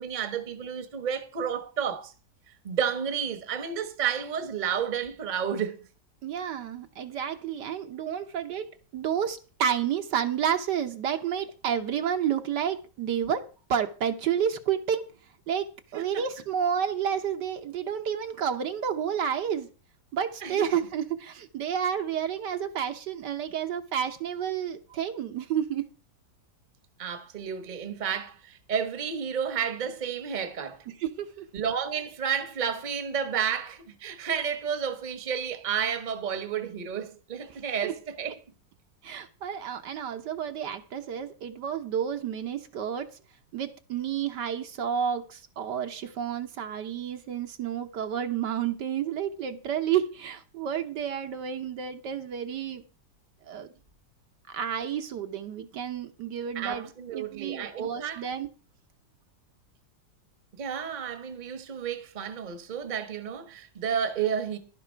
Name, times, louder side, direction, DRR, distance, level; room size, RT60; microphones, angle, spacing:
voice 1, 0.0-2.1 2.6-5.9 15.9-16.2 20.4-20.7 27.0-30.8 31.5-38.4 56.5-58.2 60.6-64.6, right 7 dB, 30° right, 1.1 m, -31 dB
voice 2, 6.2-13.4 13.7-15.0 15.5-19.7 20.1-25.8 30.9-31.5 37.8-37.9 39.0-43.1 43.5-52.8 53.5-53.7 54.5-58.5, right 8 dB, 70° right, 1.5 m, -30 dB
11.5 x 10.0 x 4.5 m
omnidirectional pair, 2.0 m